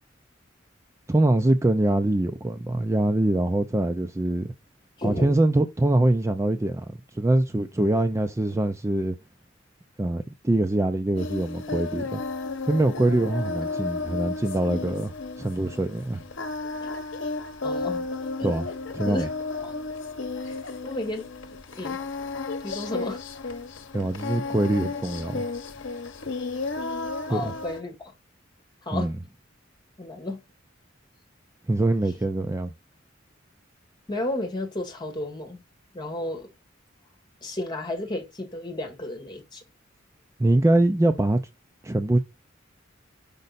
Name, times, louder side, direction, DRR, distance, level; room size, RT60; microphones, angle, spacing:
voice 1, 1.1-4.5 5.0-9.1 10.0-12.2 12.7-16.2 18.4-18.7 18.9-19.3 23.9-25.4 27.3-27.5 28.9-29.1 31.7-32.7 40.4-41.4 41.8-42.2, right 1 dB, 15° right, 0.4 m, -23 dB
voice 2, 5.0-5.4 16.8-16.9 17.6-18.1 18.4-18.5 19.0-19.3 19.6-19.7 20.5-20.6 20.8-21.3 21.8-22.0 22.6-23.2 27.3-27.9 28.9-29.1 30.0-30.4 34.1-35.6 35.9-36.5 37.4-39.6, left 1 dB, 25° left, 1.9 m, -32 dB
Singing, 11.2-27.8, left 3 dB, 75° left, 0.9 m, -33 dB
5.3 x 5.2 x 4.1 m
head